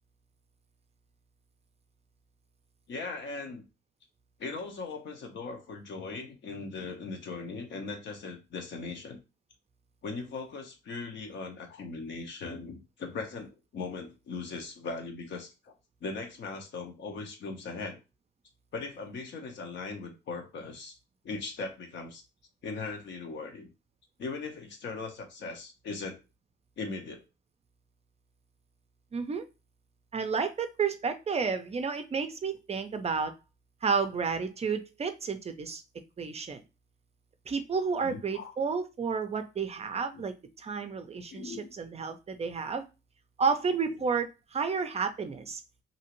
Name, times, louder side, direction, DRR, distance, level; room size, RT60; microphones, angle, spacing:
voice 1, 2.9-3.6 4.4-9.2 10.0-15.7 16.0-18.0 18.7-21.0 21.2-22.2 22.6-23.7 24.2-26.2 26.8-27.2 38.0-38.5 40.1-40.2 41.3-41.7, left 4 dB, 65° left, 3 dB, 0.9 m, -39 dB
voice 2, 29.1-29.5 30.1-33.3 33.8-35.8 36.2-36.6 37.5-42.8 43.4-45.6, right 5 dB, 30° right, 8 dB, 0.4 m, -31 dB
2.7 x 2.4 x 3.0 m, 0.28 s
cardioid pair, 90°, 20 cm